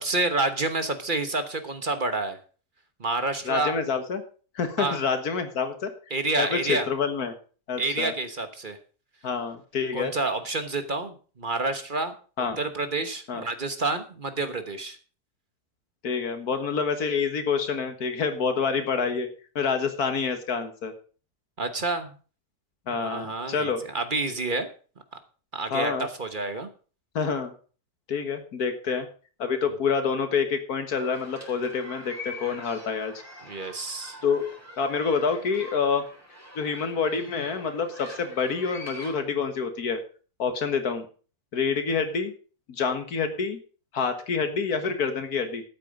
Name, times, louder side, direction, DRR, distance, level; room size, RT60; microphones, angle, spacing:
voice 1, 0.0-2.4 3.0-3.7 4.8-5.0 6.1-6.9 7.8-8.8 9.9-12.1 12.6-15.0 21.6-22.1 22.9-24.7 25.5-26.7 33.4-34.2, right 3 dB, 35° right, 9 dB, 1.2 m, -28 dB
voice 2, 3.4-4.2 4.6-5.9 6.4-7.3 7.7-8.1 9.2-10.1 12.4-12.6 13.3-13.5 16.0-19.3 19.6-20.9 22.9-23.8 25.7-26.1 27.2-27.5 28.1-29.1 29.4-33.1 34.2-34.5 34.8-36.0 36.6-40.0 40.4-41.1 41.5-42.3 42.7-43.6 43.9-45.6, left 5 dB, 90° left, 8 dB, 2.0 m, -27 dB
sound 1, 30.9-39.2, left 1 dB, 10° right, 3.8 m, -44 dB
13.0 x 8.5 x 5.2 m, 0.39 s
omnidirectional pair, 1.6 m